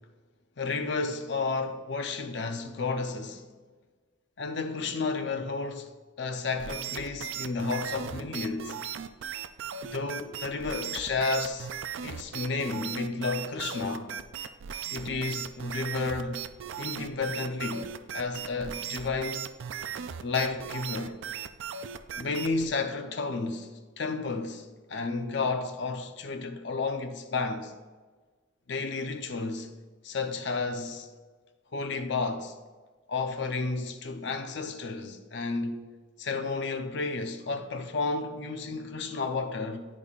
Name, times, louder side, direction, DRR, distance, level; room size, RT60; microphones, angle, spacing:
voice 1, 0.6-3.5 4.4-8.8 9.9-11.7 12.0-14.1 14.9-16.4 16.8-19.5 20.2-21.2 22.2-27.7 28.7-29.7 30.0-31.1 31.7-32.5 33.1-35.9 36.2-39.9, left 3 dB, 60° left, 0.6 m, -32 dB
sound 1, 6.6-22.7, right 8 dB, 70° right, 0.4 m, -38 dB
11.0 x 5.2 x 2.4 m
head